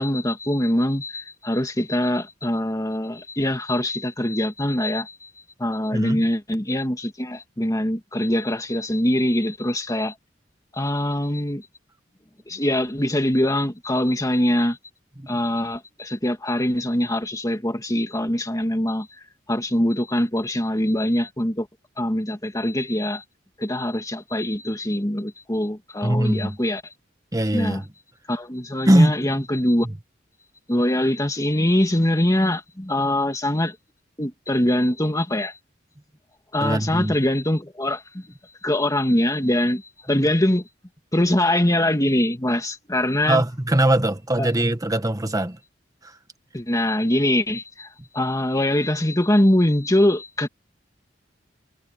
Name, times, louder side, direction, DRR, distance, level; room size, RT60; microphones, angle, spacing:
voice 1, 0.0-5.3 5.6-10.1 10.7-11.6 12.5-14.8 15.3-19.1 19.5-21.7 22.0-23.2 23.6-26.8 27.5-27.8 28.3-29.9 30.7-33.8 34.2-35.5 36.5-38.2 38.6-39.8 40.1-40.6 41.1-43.4 44.4-44.5 46.5-47.9 48.1-50.5, left 1 dB, 20° left, 2.1 m, -23 dB
voice 2, 26.0-26.6 27.3-27.9 28.9-29.4 29.8-29.9 36.6-37.1 43.3-45.6, right 1 dB, 20° right, 1.5 m, -21 dB
head